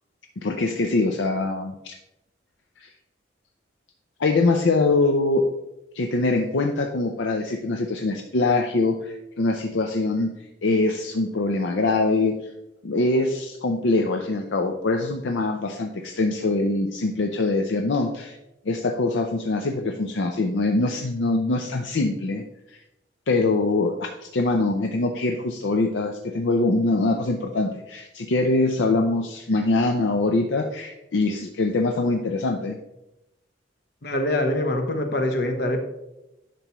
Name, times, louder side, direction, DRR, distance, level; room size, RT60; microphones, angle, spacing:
voice 1, 0.4-1.9 2.8-2.9 4.2-5.4 5.9-10.3 10.6-12.3 12.8-18.4 18.7-22.4 23.3-32.8, left 2 dB, 80° left, 4 dB, 0.6 m, -23 dB
voice 2, 34.0-35.9, left 1 dB, 60° left, 5 dB, 1.0 m, -24 dB
10.0 x 6.0 x 3.0 m, 0.92 s
head